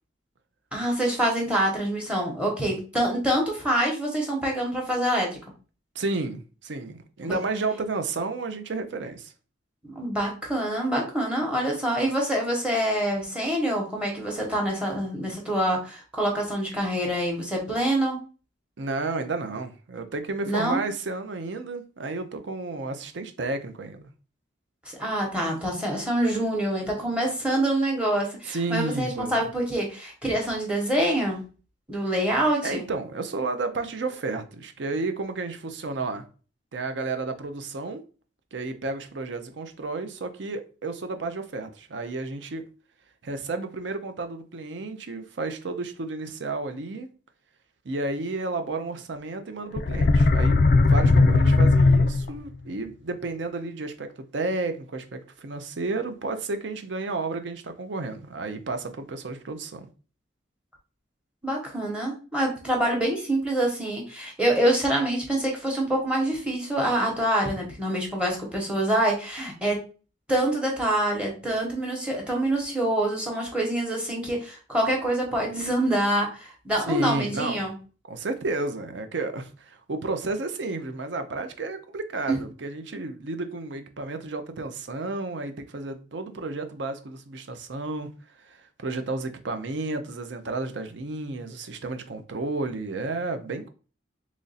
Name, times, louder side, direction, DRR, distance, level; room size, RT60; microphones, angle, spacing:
voice 1, 0.7-5.3 7.2-7.4 9.8-18.2 20.5-20.8 24.9-31.4 31.9-32.8 61.4-69.8 70.3-77.7 82.3-82.4, right 1 dB, 5° right, 0.9 m, -26 dB
voice 2, 5.9-9.3 18.8-24.1 28.5-29.5 32.6-36.2 36.7-38.0 38.5-42.6 43.2-47.1 47.8-59.9 76.9-77.7 78.1-88.1 88.5-93.7, right 3 dB, 70° right, 0.6 m, -32 dB
sound 1, 49.8-52.6, left 3 dB, 50° left, 0.3 m, -18 dB
3.0 x 2.5 x 4.0 m
head